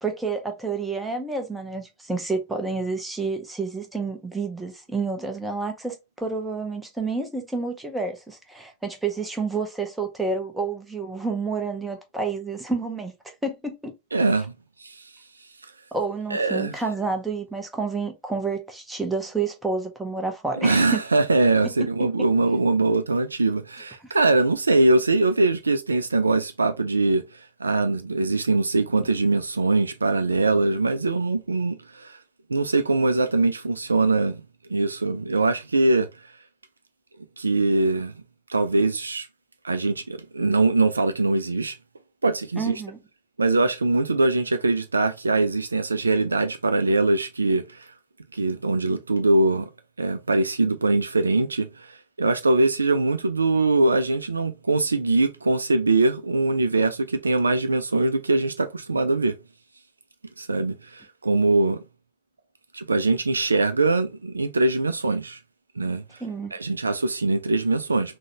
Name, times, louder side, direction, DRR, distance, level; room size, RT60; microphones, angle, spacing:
voice 1, 0.0-13.1 13.4-13.9 15.9-21.0 21.6-21.7 24.0-24.2 42.6-43.0 66.2-66.5, right 4 dB, 5° right, 0.9 m, -29 dB
voice 2, 14.1-14.5 14.8-15.0 16.3-16.7 20.6-27.2 27.6-32.2 32.5-34.4 34.7-36.1 37.4-38.1 38.5-39.3 39.6-41.8 42.2-42.8 43.4-47.9 48.3-49.7 50.0-59.3 60.4-61.8 62.7-65.4 65.8-66.0 66.5-68.2, right 2 dB, 80° right, 0.3 m, -22 dB
3.8 x 2.2 x 2.8 m
figure-of-eight pair, 90°, 0 cm